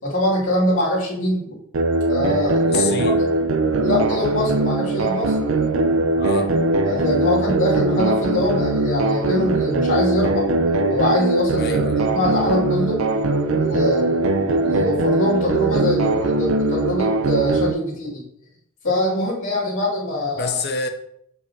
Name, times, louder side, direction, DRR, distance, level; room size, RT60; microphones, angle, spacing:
voice 1, 0.0-1.5 2.1-3.1 3.8-5.4 6.9-10.5 10.9-11.7 12.1-13.0 13.4-18.2 18.8-20.5, left 1 dB, 65° left, 2.5 m, -23 dB
sound 1, 1.7-17.7, right 2 dB, 70° right, 0.5 m, -20 dB
voice 2, 2.6-3.2 6.2-6.5 11.6-12.1 20.4-20.9, left 5 dB, 50° left, 0.7 m, -27 dB
6.3 x 5.5 x 2.8 m
head